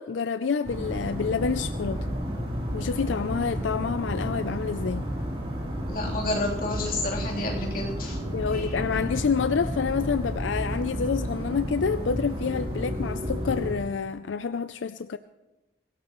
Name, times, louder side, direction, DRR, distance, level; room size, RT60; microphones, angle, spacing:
voice 1, 0.0-2.1 2.7-5.0 8.3-15.2, left 5 dB, 85° left, 12 dB, 0.4 m, -28 dB
sound 1, 0.6-13.7, equal, 30° right, 3.3 m, -32 dB
sound 2, 5.6-13.7, equal, 30° left, 1.7 m, -40 dB
voice 2, 5.9-8.2 8.5-8.8, left 2 dB, 50° left, -3 dB, 3.4 m, -30 dB
23.0 x 16.5 x 3.1 m, 1.0 s
head